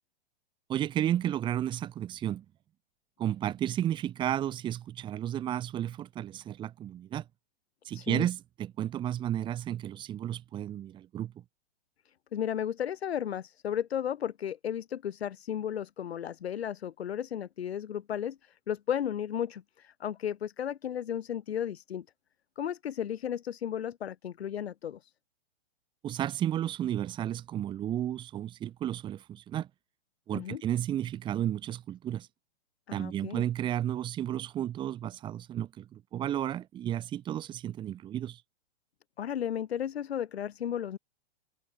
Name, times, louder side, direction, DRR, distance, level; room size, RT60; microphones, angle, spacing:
voice 1, 0.7-2.4 3.2-7.2 7.8-11.3 26.0-29.7 30.3-32.3 32.9-38.4, right 11 dB, 15° right, 3.8 m, -32 dB
voice 2, 7.9-8.3 12.0-22.0 22.6-25.1 30.3-30.6 32.9-33.4 39.2-41.0, left 9 dB, 75° left, 4.8 m, -34 dB
hypercardioid pair, 175°, 32 cm